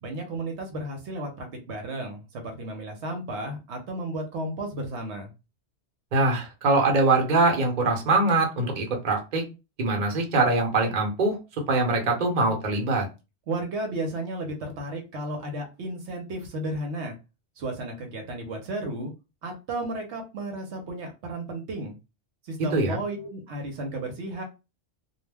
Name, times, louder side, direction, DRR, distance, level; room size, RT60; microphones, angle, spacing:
voice 1, 0.0-5.3 13.5-17.1 17.6-19.1 19.4-21.9 22.4-24.4, right 1 dB, 75° right, 3 dB, 0.9 m, -33 dB
voice 2, 6.1-9.4 9.8-11.4 11.7-13.1 22.7-23.0, right 3 dB, 45° right, 2 dB, 0.8 m, -23 dB
2.3 x 2.0 x 3.3 m, 0.27 s
omnidirectional pair, 1.2 m